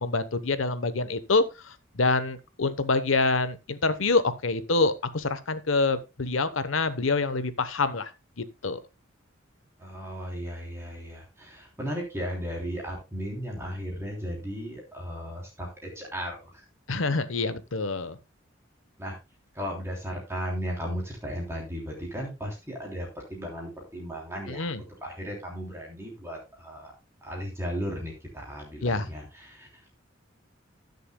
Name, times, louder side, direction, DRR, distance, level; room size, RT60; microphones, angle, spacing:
voice 1, 0.0-8.1 8.4-8.8 16.9-18.2 24.5-24.8 28.8-29.1, left 3 dB, 80° left, 12 dB, 1.0 m, -26 dB
voice 2, 9.8-16.6 19.0-19.1 19.5-24.7 25.0-26.9 27.2-29.9, equal, 15° right, -2 dB, 3.1 m, -35 dB
19.5 x 6.7 x 2.2 m, 0.26 s
head